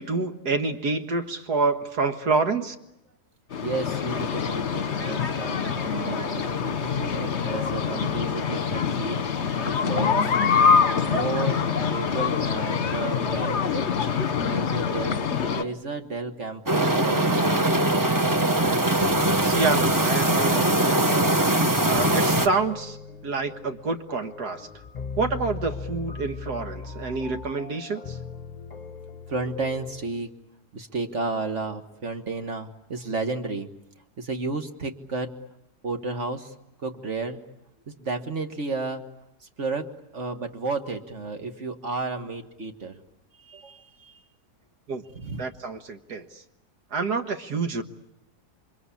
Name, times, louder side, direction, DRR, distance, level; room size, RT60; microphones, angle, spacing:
voice 1, 0.0-2.8 19.4-21.0 21.8-23.0 23.2-24.7 25.2-28.2 44.9-45.0 45.4-46.4 46.9-47.8, right 4 dB, 80° right, 7 dB, 2.1 m, -27 dB
sound 1, 3.5-15.6, left 6 dB, 45° left, 1.4 m, -25 dB
voice 2, 3.6-9.2 9.6-10.3 11.1-13.6 14.4-15.1 15.5-17.4 29.3-30.3 30.7-33.7 34.2-35.3 35.8-37.4 37.9-39.0 39.4-43.0 43.4-44.2 45.1-45.5, right 3 dB, 50° right, 6 dB, 1.9 m, -32 dB
sound 2, 16.7-22.5, right 1 dB, 15° right, 1.1 m, -21 dB
sound 3, 18.3-30.1, left 5 dB, 30° left, 1.3 m, -39 dB
29.0 x 24.0 x 8.5 m, 0.83 s
omnidirectional pair, 1.7 m